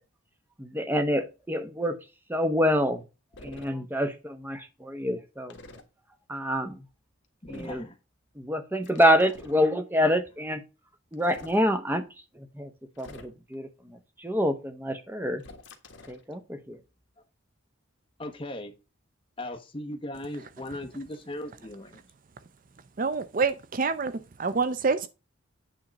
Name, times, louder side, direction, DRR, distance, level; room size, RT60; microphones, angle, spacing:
voice 1, 0.6-2.0 2.3-3.1 3.4-5.5 6.3-6.8 7.5-7.8 8.4-10.6 11.1-12.0 12.3-12.7 13.0-15.4 16.1-16.8, equal, 10° right, 1.0 m, -27 dB
sound 1, 3.3-3.7 5.5-5.8 7.4-7.9 8.8-9.6 11.1-11.6 13.0-13.5 15.4-16.2, left 2 dB, 60° left, 1.5 m, -47 dB
voice 2, 7.4-8.0 18.2-18.7 19.4-22.0, left 1 dB, 25° left, 1.1 m, -38 dB
voice 3, 23.0-24.1 24.4-25.1, right 4 dB, 40° right, 0.5 m, -26 dB
8.9 x 3.7 x 5.2 m
head